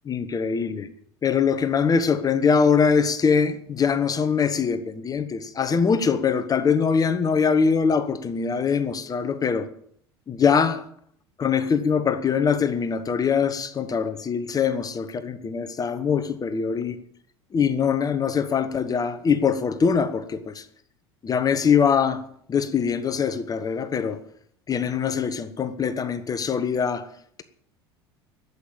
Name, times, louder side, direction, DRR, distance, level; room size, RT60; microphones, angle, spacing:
voice 1, 0.1-0.9 1.2-9.7 10.3-10.9 11.4-17.0 17.5-20.7 21.2-22.2 22.5-24.2 24.7-27.1, left 6 dB, 25° left, 1.1 m, -23 dB
13.0 x 8.3 x 8.7 m
figure-of-eight pair, 70°, 14 cm